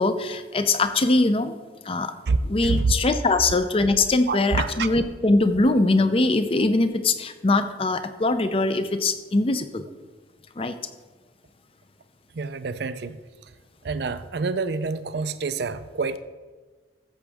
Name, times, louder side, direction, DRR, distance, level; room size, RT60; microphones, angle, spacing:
voice 1, 0.0-1.6 1.8-2.1 2.4-9.8 10.6-10.7, left 2 dB, 30° left, 10 dB, 0.6 m, -22 dB
voice 2, 2.6-3.2 4.3-4.9 12.3-13.2 13.8-16.2, right 4 dB, 60° right, 12 dB, 0.5 m, -27 dB
13.5 x 7.3 x 3.5 m, 1.3 s
head